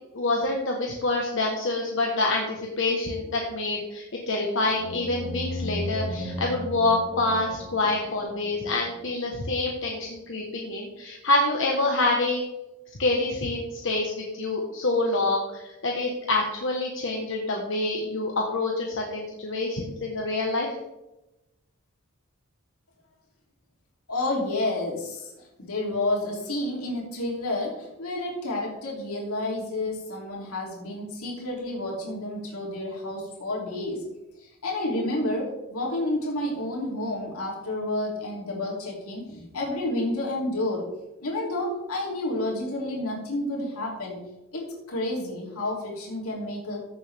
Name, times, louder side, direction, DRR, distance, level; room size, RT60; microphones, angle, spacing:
voice 1, 0.1-12.4 13.0-20.7, left 2 dB, 60° left, 0 dB, 1.3 m, -26 dB
sound 1, 4.7-9.2, left 1 dB, 30° right, 2.7 m, -35 dB
voice 2, 24.1-25.3 25.6-34.0 34.4-40.9 41.2-44.2 44.5-46.8, left 1 dB, 90° left, -3 dB, 3.2 m, -30 dB
15.0 x 7.0 x 3.5 m, 0.96 s
head